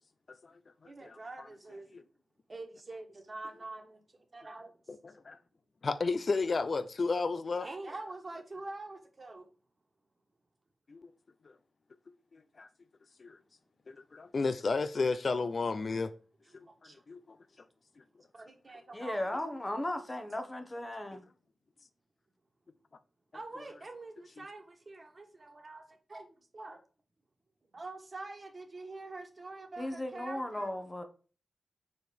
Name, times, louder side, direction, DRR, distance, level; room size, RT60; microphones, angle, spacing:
voice 1, 0.3-1.5 5.0-5.4 5.8-7.7 10.9-11.1 11.4-11.5 12.3-12.7 13.2-13.4 13.9-16.1 16.5-17.4 21.1-21.2 24.4-24.5, left 4 dB, 55° left, 0.4 m, -33 dB
voice 2, 0.9-1.9 2.5-4.7 7.6-9.5 16.7-17.0 18.3-19.5 23.3-25.8 26.1-26.8 27.7-30.7, right 2 dB, 40° right, 1.4 m, -45 dB
voice 3, 18.9-21.2 29.8-31.0, left 1 dB, 25° left, 1.1 m, -36 dB
4.6 x 4.3 x 5.1 m
cardioid pair, 65°, 0 cm